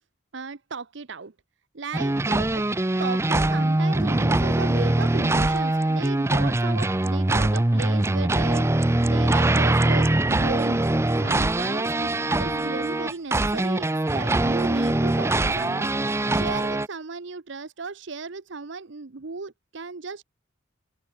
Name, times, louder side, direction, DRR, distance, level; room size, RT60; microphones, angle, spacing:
voice 1, 0.3-1.3 1.7-2.6 3.0-8.7 9.0-10.9 11.2-12.1 12.4-15.9 16.3-20.2, right 4 dB, 60° right, 0.8 m, -35 dB
sound 1, 1.9-16.9, right 2 dB, 15° right, 0.5 m, -22 dB
open air
head